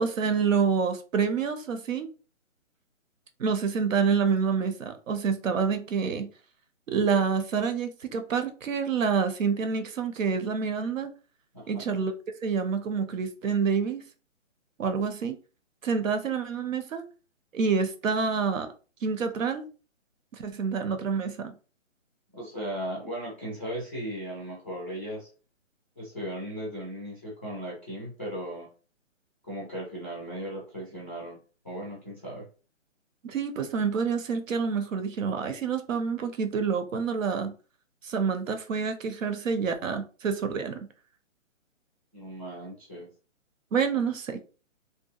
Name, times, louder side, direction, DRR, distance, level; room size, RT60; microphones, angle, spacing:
voice 1, 0.0-2.1 3.4-6.3 6.9-11.1 11.7-12.1 12.4-14.0 14.8-15.4 15.8-17.0 17.5-18.7 19.0-19.7 20.3-21.5 33.2-37.5 38.0-40.8 43.7-44.4, right 5 dB, 80° right, 0.7 m, -27 dB
voice 2, 11.5-11.9 22.3-25.3 26.0-28.7 29.5-31.4 31.6-32.5 42.1-43.1, equal, 10° left, 0.4 m, -37 dB
2.7 x 2.3 x 2.3 m
hypercardioid pair, 155°, 39 cm